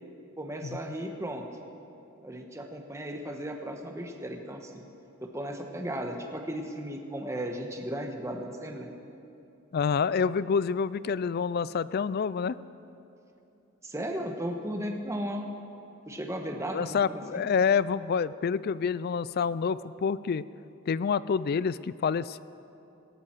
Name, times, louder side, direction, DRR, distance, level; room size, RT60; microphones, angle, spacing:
voice 1, 0.4-1.4 2.2-4.8 5.2-8.9 13.8-15.5 16.1-17.4, equal, 15° right, 3 dB, 1.2 m, -35 dB
voice 2, 9.7-12.6 16.7-20.4 20.9-22.4, left 6 dB, 45° left, 18 dB, 0.3 m, -27 dB
18.5 x 17.0 x 4.5 m, 2.8 s
head